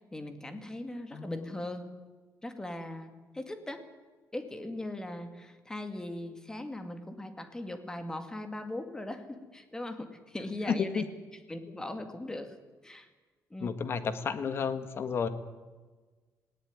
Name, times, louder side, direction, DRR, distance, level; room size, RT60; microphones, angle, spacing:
voice 1, 0.0-1.9 2.4-3.9 4.3-11.1 11.5-12.6 12.8-13.1 13.5-13.7, left 1 dB, 10° left, 7 dB, 2.2 m, -39 dB
voice 2, 1.1-1.4 10.7-11.1 13.6-15.3, left 6 dB, 45° left, 10 dB, 1.7 m, -31 dB
19.5 x 17.5 x 9.7 m, 1.3 s
cardioid pair, 155°, 6 cm